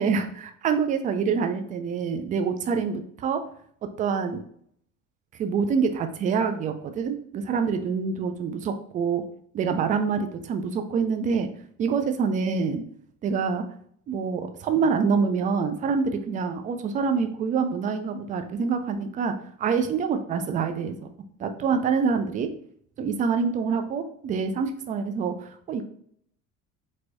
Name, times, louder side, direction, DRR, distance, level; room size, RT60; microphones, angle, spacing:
voice 1, 0.0-3.4 4.0-4.4 5.4-9.2 9.5-11.5 11.8-12.8 13.2-13.6 14.1-21.0 21.4-22.5 23.0-25.8, right 5 dB, 20° right, 7 dB, 0.3 m, -26 dB
4.4 x 2.9 x 2.5 m, 0.63 s
figure-of-eight pair, 60°, 43 cm